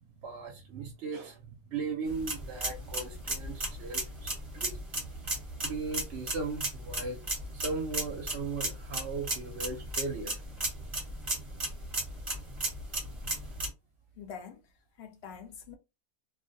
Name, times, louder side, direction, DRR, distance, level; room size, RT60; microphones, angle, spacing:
voice 1, 0.2-4.8 5.6-7.2 7.5-10.4, right 4 dB, 60° right, 0.8 m, -37 dB
sound 1, 2.1-13.7, right 1 dB, 30° right, 0.7 m, -36 dB
voice 2, 14.2-14.6 15.0-15.8, left 7 dB, 60° left, 0.7 m, -45 dB
2.4 x 2.0 x 2.5 m
omnidirectional pair, 1.5 m